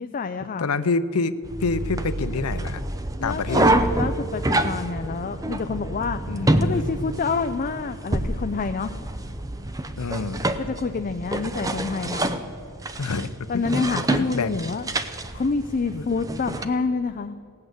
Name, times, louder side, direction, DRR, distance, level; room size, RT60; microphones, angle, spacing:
voice 1, 0.0-0.7 3.2-3.6 3.9-6.2 6.6-8.9 10.6-12.4 13.5-14.9 15.3-17.4, left 4 dB, 35° left, 8 dB, 0.4 m, -27 dB
voice 2, 0.6-1.4 1.6-2.8 3.2-3.9 6.3-6.8 9.9-10.5 13.0-13.6 14.1-14.6 15.9-16.0, left 4 dB, 80° left, 13 dB, 0.6 m, -27 dB
sound 1, 1.4-16.6, right 1 dB, 15° right, 0.6 m, -27 dB
17.5 x 8.7 x 7.9 m, 2.6 s
head